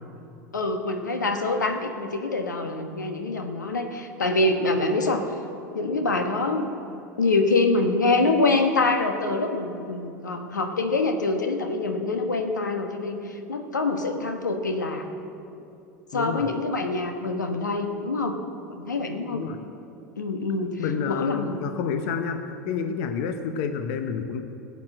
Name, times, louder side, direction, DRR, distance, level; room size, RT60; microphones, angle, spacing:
voice 1, 0.5-5.2 5.7-6.7 7.2-15.1 16.1-18.4 18.7-19.5 20.2-20.8 21.1-21.6, left 3 dB, 85° left, 5 dB, 1.1 m, -25 dB
voice 2, 16.1-16.5 19.3-19.6 20.8-24.4, left 6 dB, 60° left, 8 dB, 0.9 m, -29 dB
16.0 x 8.1 x 7.6 m, 2.7 s
hypercardioid pair, 85°, 10 cm